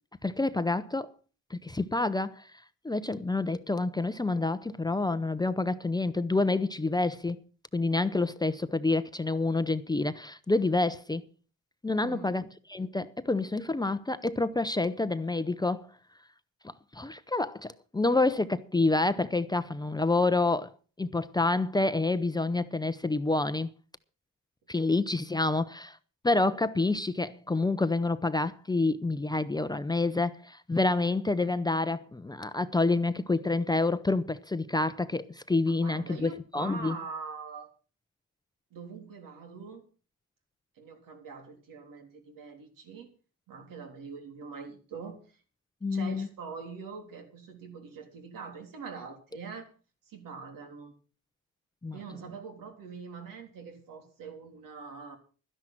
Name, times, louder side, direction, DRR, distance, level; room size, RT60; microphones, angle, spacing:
voice 1, 0.2-1.1 1.5-2.5 2.8-7.4 7.7-11.2 11.8-12.4 12.7-15.9 16.6-20.7 21.0-23.7 24.7-26.0 26.2-37.0 45.8-46.3 51.8-52.0, left 2 dB, 10° left, 0.7 m, -28 dB
voice 2, 11.9-12.3 35.8-37.7 38.7-39.8 40.8-43.1 43.5-45.4 45.9-49.7 50.1-50.9 51.9-55.2, right 5 dB, 80° right, 3.5 m, -43 dB
12.0 x 10.5 x 5.9 m
cardioid pair, 100°, 33 cm